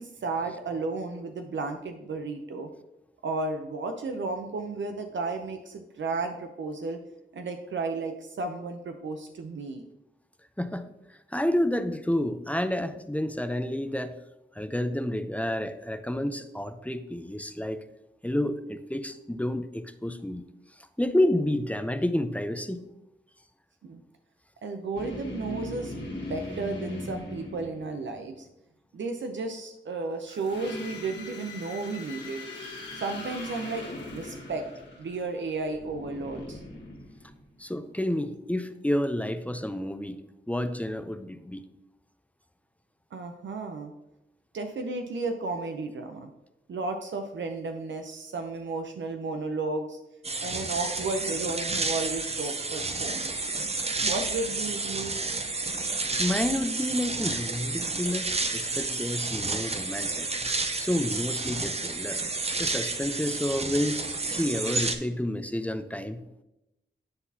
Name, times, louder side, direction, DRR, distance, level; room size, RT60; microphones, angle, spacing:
voice 1, 0.0-2.7 3.2-7.0 7.3-9.8 23.8-24.0 24.6-28.5 28.9-32.4 32.9-34.7 35.0-36.6 43.1-43.9 44.5-46.3 46.7-50.0 50.4-53.3 54.0-55.1, right 3 dB, 75° right, 5 dB, 0.6 m, -33 dB
voice 2, 10.6-14.1 14.5-17.8 18.2-20.5 20.8-22.9 37.6-40.2 40.5-41.6 56.2-60.3 60.8-62.2 62.6-64.0 64.3-66.2, left 1 dB, 5° left, 9 dB, 0.5 m, -30 dB
sound 1, 24.9-28.2 30.3-37.6, left 2 dB, 65° left, 1.5 m, -40 dB
sound 2, 50.2-65.0, right 3 dB, 30° right, 0.6 m, -31 dB
9.6 x 4.0 x 2.7 m, 0.89 s
cardioid pair, 55°, 19 cm